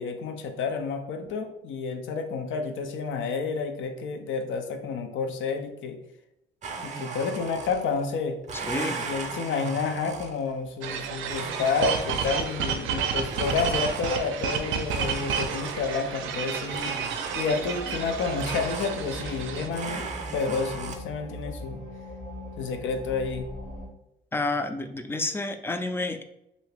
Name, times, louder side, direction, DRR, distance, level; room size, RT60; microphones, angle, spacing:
voice 1, 0.0-6.0 6.8-8.4 9.0-17.0 17.3-20.0 20.3-21.8 22.6-23.5, left 5 dB, 75° left, 6 dB, 0.5 m, -30 dB
Domestic sounds home sounds, 6.6-8.0 8.4-10.6 11.3-12.6 13.3-14.4 14.9-16.1 16.7-17.8 18.4-19.4 19.7-21.0, right 4 dB, 35° right, 0.6 m, -37 dB
voice 2, 8.6-9.0 24.3-26.2, left 2 dB, 10° left, 7 dB, 0.3 m, -29 dB
sound 1, 10.8-19.7, right 6 dB, 90° right, 0.4 m, -31 dB
sound 2, 17.6-23.9, equal, 40° left, 0.9 m, -40 dB
2.8 x 2.6 x 3.3 m, 0.83 s
cardioid pair, 90°, 20 cm